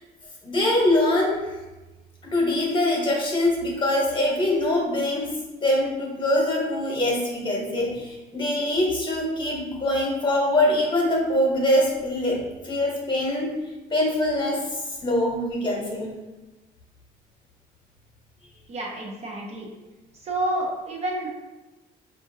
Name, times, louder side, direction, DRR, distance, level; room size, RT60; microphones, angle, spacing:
voice 1, 0.4-1.5 2.3-13.5 13.9-16.1, left 1 dB, 30° left, -2 dB, 1.1 m, -23 dB
voice 2, 18.7-19.7 20.2-21.3, right 1 dB, 40° right, -2 dB, 0.7 m, -29 dB
4.2 x 2.5 x 2.7 m, 1.1 s
cardioid pair, 110°, 17 cm